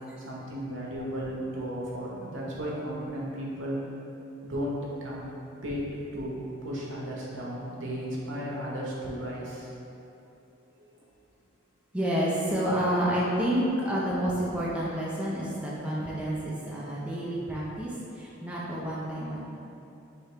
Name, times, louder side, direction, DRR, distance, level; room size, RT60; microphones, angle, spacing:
voice 1, 0.2-3.9 4.4-9.7 18.7-18.8, equal, 70° right, -4 dB, 0.8 m, -35 dB
voice 2, 11.9-19.4, equal, 5° right, -7 dB, 0.4 m, -29 dB
4.8 x 2.9 x 3.2 m, 2.8 s
head